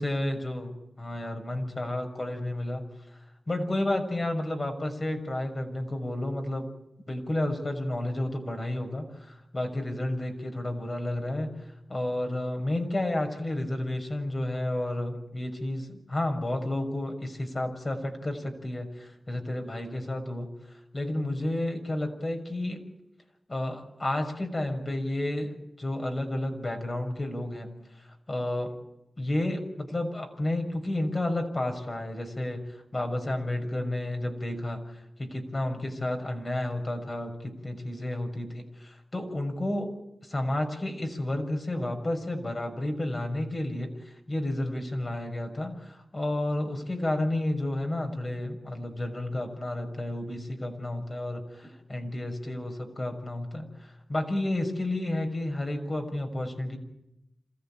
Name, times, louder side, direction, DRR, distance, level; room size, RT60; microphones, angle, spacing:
voice 1, 0.0-2.8 3.1-3.2 3.5-6.7 7.1-22.8 23.5-27.7 28.0-28.7 29.2-39.9 40.2-56.8, left 1 dB, 40° left, 4 dB, 6.4 m, -31 dB
27.0 x 15.5 x 8.9 m, 0.86 s
cardioid pair, 40°, 0 cm